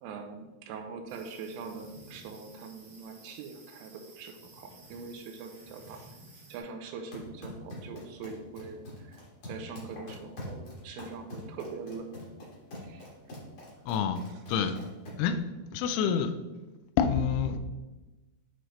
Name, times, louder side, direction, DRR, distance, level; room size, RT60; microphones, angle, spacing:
voice 1, 0.0-6.0 6.5-12.1 12.8-13.1, right 4 dB, 85° right, 4 dB, 3.1 m, -43 dB
sound 1, 1.1-6.6, right 1 dB, 55° right, 1.4 m, -54 dB
sound 2, 7.0-15.4, left 1 dB, 55° left, 1.6 m, -45 dB
voice 2, 13.9-14.2 14.5-14.7 15.2-15.4 15.7-16.3 17.0-17.6, left 7 dB, 85° left, 9 dB, 2.8 m, -27 dB
9.0 x 3.2 x 3.8 m, 1.1 s
omnidirectional pair, 5.7 m